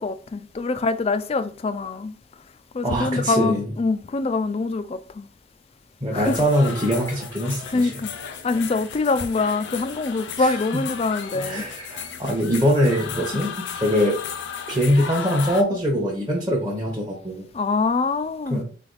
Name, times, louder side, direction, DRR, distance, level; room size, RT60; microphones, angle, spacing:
voice 1, 0.0-2.2 2.7-5.3 6.1-6.4 7.7-8.1 8.4-11.7 13.3-13.4 17.5-18.6, left 3 dB, 30° left, 0.3 m, -24 dB
voice 2, 2.8-3.6 6.0-8.0 10.4-10.8 11.3-14.2 14.7-17.5 18.5-18.6, equal, 20° right, 0.9 m, -23 dB
sound 1, 6.2-15.6, left 7 dB, 70° left, 0.6 m, -35 dB
4.0 x 3.3 x 3.9 m
head